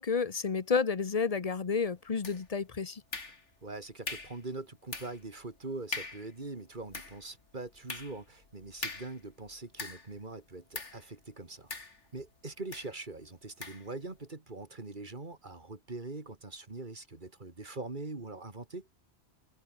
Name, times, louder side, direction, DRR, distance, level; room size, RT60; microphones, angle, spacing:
voice 1, 0.0-3.0, left 5 dB, 35° left, 1.0 m, -30 dB
sound 1, 2.2-2.6 3.1-3.7 4.1-4.4 4.9-5.3 5.6-5.7 5.9-6.3 6.7-10.2 10.7-11.1 11.7-12.3 12.7-12.9 13.6-13.9, left 3 dB, 80° left, 3.3 m, -42 dB
voice 2, 3.6-11.7 12.1-18.9, right 3 dB, 45° right, 2.6 m, -43 dB
omnidirectional pair, 1.2 m